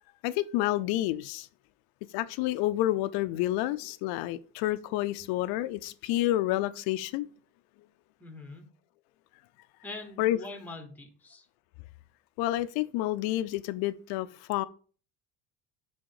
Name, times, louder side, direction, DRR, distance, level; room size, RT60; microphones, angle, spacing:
voice 1, 0.2-1.5 2.1-7.3 10.2-10.4 12.4-14.6, left 15 dB, 85° left, 0.5 m, -29 dB
voice 2, 8.2-8.6 9.8-11.5, left 2 dB, 5° left, 0.9 m, -43 dB
6.3 x 3.6 x 4.6 m
cardioid pair, 165°, 36 cm